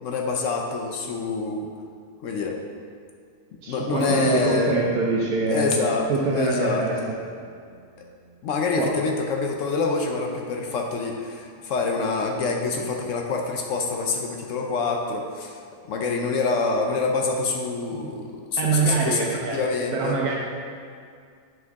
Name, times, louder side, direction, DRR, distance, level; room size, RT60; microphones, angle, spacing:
voice 1, 0.0-1.7 2.2-2.6 3.7-4.9 5.5-6.8 8.4-20.2, left 4 dB, 65° left, 2 dB, 0.9 m, -26 dB
voice 2, 3.6-7.0 8.8-8.9 17.9-18.1 18.6-20.3, right 4 dB, 90° right, -3 dB, 1.2 m, -25 dB
Acoustic guitar / Strum, 3.9-9.3, left 1 dB, 25° left, 1.8 m, -35 dB
9.0 x 4.5 x 3.5 m, 2.2 s
omnidirectional pair, 1.6 m